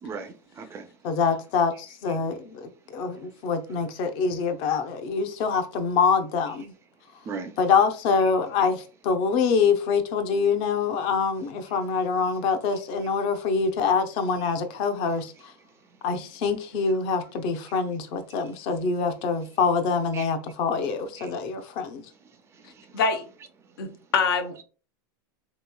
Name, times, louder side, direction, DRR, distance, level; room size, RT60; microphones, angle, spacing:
voice 1, 0.0-0.9 7.2-7.5 14.4-14.5 20.1-20.3 21.2-21.3 22.6-23.0, right 5 dB, 20° right, 0.4 m, -38 dB
voice 2, 1.0-6.7 7.6-15.3 16.0-22.0, left 5 dB, 45° left, 0.6 m, -25 dB
voice 3, 22.9-23.2 23.8-24.6, left 5 dB, 85° left, 0.8 m, -25 dB
3.6 x 3.0 x 2.2 m
supercardioid pair, 135°, 12 cm